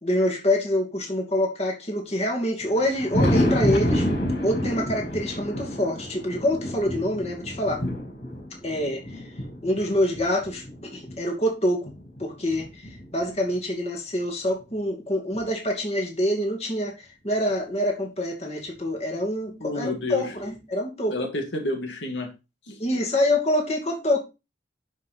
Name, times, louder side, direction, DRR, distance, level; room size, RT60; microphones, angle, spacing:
voice 1, 0.0-4.1 4.4-7.8 8.6-9.2 9.6-11.9 12.2-12.8 13.1-21.1 22.8-24.2, left 1 dB, 35° left, 2 dB, 2.5 m, -26 dB
Thunder, 2.6-11.2 11.8-13.5 14.7-14.8 15.3-15.4 17.3-17.4 18.8-18.9 20.4-20.5, equal, 65° left, 5.8 m, -29 dB
voice 2, 19.6-20.3 21.1-22.3 22.7-22.8, left 2 dB, 80° left, 3 dB, 2.3 m, -30 dB
11.5 x 5.6 x 4.3 m, 0.27 s
head